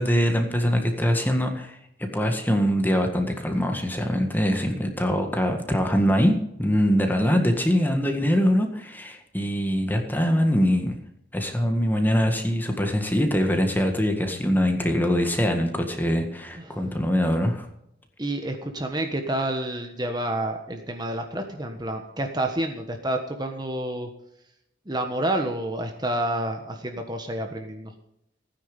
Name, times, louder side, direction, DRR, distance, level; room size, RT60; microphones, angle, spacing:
voice 1, 0.0-6.3 6.6-10.9 11.3-17.7, equal, 10° left, 4 dB, 1.7 m, -23 dB
voice 2, 16.5-16.9 18.2-24.1 24.9-27.9, right 1 dB, 20° right, 4 dB, 1.3 m, -29 dB
16.0 x 9.9 x 5.4 m, 0.79 s
head